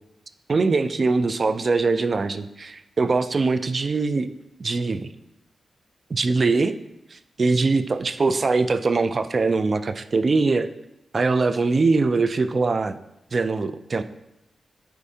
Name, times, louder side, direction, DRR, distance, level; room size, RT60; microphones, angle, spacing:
voice 1, 0.5-4.3 4.6-5.1 6.1-6.8 7.1-10.7 11.1-13.0 13.3-14.0, right 3 dB, 50° right, 11 dB, 0.4 m, -22 dB
8.4 x 4.6 x 2.8 m, 0.85 s
cardioid pair, 80°, 0 cm